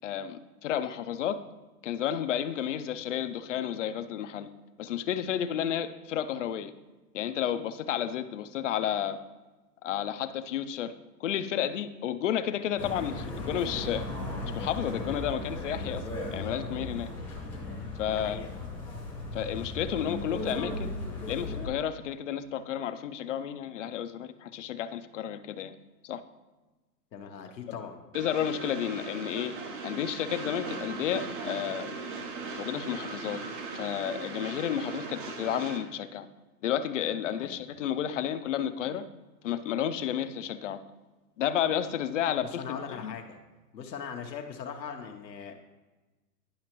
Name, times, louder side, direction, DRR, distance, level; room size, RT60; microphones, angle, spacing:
voice 1, 0.0-1.4 1.8-4.5 4.8-6.7 7.1-9.2 9.8-10.9 11.2-14.1 14.5-16.0 16.3-17.1 18.0-18.5 19.3-21.0 21.3-25.7 26.0-26.2 27.7-27.8 28.1-31.9 32.6-33.4 33.7-36.3 36.6-39.0 39.4-40.8 41.4-43.1, left 10 dB, 50° left, 11 dB, 0.5 m, -31 dB
sound 1, 12.8-21.7, left 2 dB, 5° left, 0.7 m, -36 dB
voice 2, 18.1-18.5 27.1-28.0 37.4-37.5 42.4-43.4 43.7-45.6, left 7 dB, 90° left, 3 dB, 1.1 m, -40 dB
Train, 28.1-35.8, right 4 dB, 30° right, 0.7 m, -38 dB
10.0 x 5.7 x 3.0 m, 1.2 s
hypercardioid pair, 150°, 49 cm